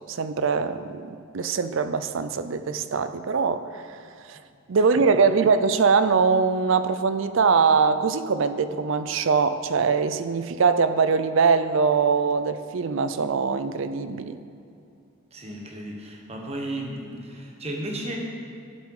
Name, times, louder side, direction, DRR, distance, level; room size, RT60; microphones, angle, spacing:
voice 1, 0.1-4.0 4.3-4.4 4.7-14.4, right 5 dB, 60° right, 12 dB, 0.5 m, -22 dB
voice 2, 15.3-18.2, right 1 dB, 30° right, 0 dB, 1.3 m, -34 dB
11.0 x 7.6 x 4.8 m, 2.4 s
head